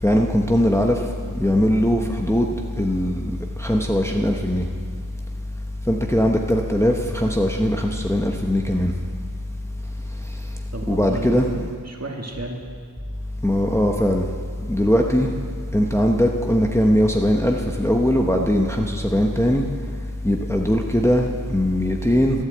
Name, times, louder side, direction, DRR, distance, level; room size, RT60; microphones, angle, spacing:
voice 1, 0.0-1.0 1.3-4.7 5.9-8.9 10.9-11.7 13.4-14.3 14.7-15.3 15.7-19.6 20.2-22.4, equal, 10° left, 1 dB, 1.0 m, -20 dB
voice 2, 10.7-12.6 22.1-22.4, right 2 dB, 45° right, 0 dB, 2.1 m, -33 dB
12.0 x 10.5 x 8.0 m, 2.2 s
wide cardioid pair, 55°, 36 cm